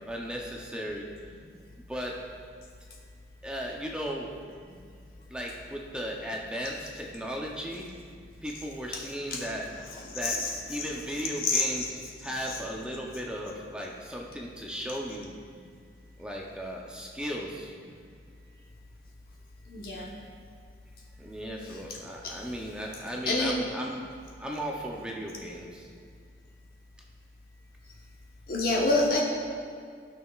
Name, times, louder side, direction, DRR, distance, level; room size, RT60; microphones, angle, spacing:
voice 1, 0.1-1.1 1.9-2.1 3.4-4.3 5.3-7.9 8.4-10.4 10.7-15.3 16.2-17.7 21.2-24.0 24.4-25.9, equal, 5° right, -2 dB, 0.6 m, -36 dB
voice 2, 10.2-10.8 11.4-11.9 19.7-20.1 22.2-22.4 23.3-23.5 28.5-29.2, left 2 dB, 55° left, -3 dB, 1.0 m, -27 dB
14.0 x 6.3 x 2.4 m, 2.2 s
head